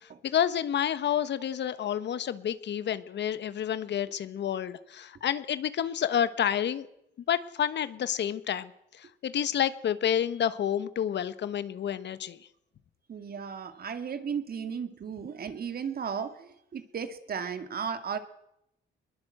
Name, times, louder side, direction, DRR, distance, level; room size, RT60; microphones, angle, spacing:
voice 1, 0.0-6.9 7.3-8.7 9.0-12.4, left 9 dB, 60° left, 14 dB, 1.2 m, -29 dB
voice 2, 13.1-18.2, right 7 dB, 50° right, 9 dB, 2.3 m, -35 dB
21.5 x 21.0 x 7.8 m, 0.82 s
cardioid pair, 90°, 20 cm